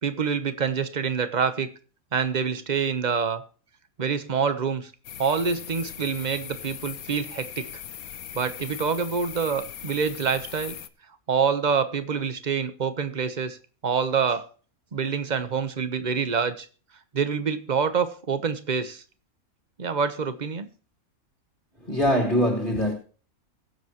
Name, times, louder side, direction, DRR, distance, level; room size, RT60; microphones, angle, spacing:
voice 1, 0.0-1.7 2.1-3.4 4.0-4.9 5.2-7.7 8.3-10.8 11.3-13.6 13.8-14.5 14.9-16.7 17.1-19.0 19.8-20.7, right 6 dB, 35° right, 1.1 m, -26 dB
sound 1, 5.0-10.9, left 9 dB, 80° left, 1.3 m, -40 dB
voice 2, 21.8-22.9, equal, 35° left, 2.4 m, -23 dB
22.5 x 7.9 x 3.0 m
omnidirectional pair, 1.5 m